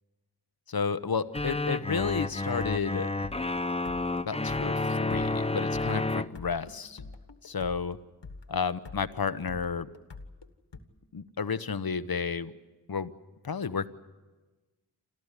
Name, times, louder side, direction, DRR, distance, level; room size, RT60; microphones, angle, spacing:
voice 1, 0.7-3.1 4.2-7.0 7.4-8.0 8.5-9.9 11.1-12.5 12.9-13.1 13.4-13.9, left 5 dB, 60° left, 12 dB, 1.0 m, -31 dB
sound 1, 1.2-10.8, left 3 dB, 80° left, 1.6 m, -46 dB
sound 2, 1.3-6.3, left 2 dB, 15° left, 0.7 m, -30 dB
28.5 x 14.0 x 9.9 m, 1.2 s
wide cardioid pair, 50°, 41 cm